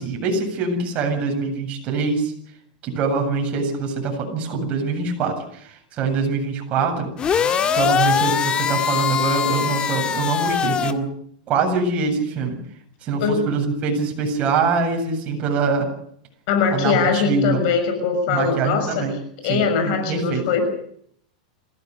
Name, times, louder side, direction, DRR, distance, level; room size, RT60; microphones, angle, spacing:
voice 1, 0.0-2.3 2.8-7.1 7.7-11.1 11.5-12.6 13.0-15.9 16.7-17.6 18.3-19.1 19.4-20.4, right 4 dB, 35° right, 2 dB, 7.9 m, -24 dB
sound 1, 7.2-10.9, left 7 dB, 25° left, 1.8 m, -22 dB
voice 2, 13.2-13.6 16.5-19.1 19.4-20.9, left 5 dB, 55° left, 6 dB, 6.2 m, -21 dB
27.0 x 16.0 x 6.9 m, 0.66 s
supercardioid pair, 135°, 4 cm